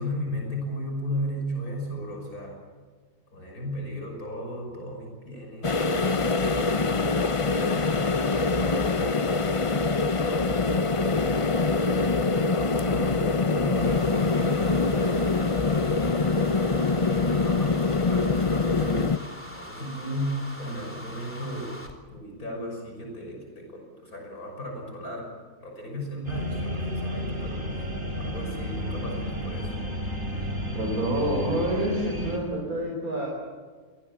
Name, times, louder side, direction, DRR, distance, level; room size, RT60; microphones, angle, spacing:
voice 1, 0.0-2.6 3.3-5.8 6.3-7.3 7.9-9.4 10.2-15.2 15.9-16.4 16.9-21.7 22.1-25.3 25.6-27.9 28.2-29.7, equal, 80° left, 1 dB, 6.7 m, -36 dB
sound 1, 5.6-19.2, left 3 dB, 30° left, 0.6 m, -24 dB
sound 2, 13.8-22.0, equal, 10° left, 3.4 m, -42 dB
sound 3, 26.3-32.4, equal, 35° right, 4.8 m, -32 dB
voice 2, 30.7-33.3, right 1 dB, 75° right, -1 dB, 5.3 m, -28 dB
27.0 x 22.0 x 7.3 m, 1.5 s
omnidirectional pair, 1.5 m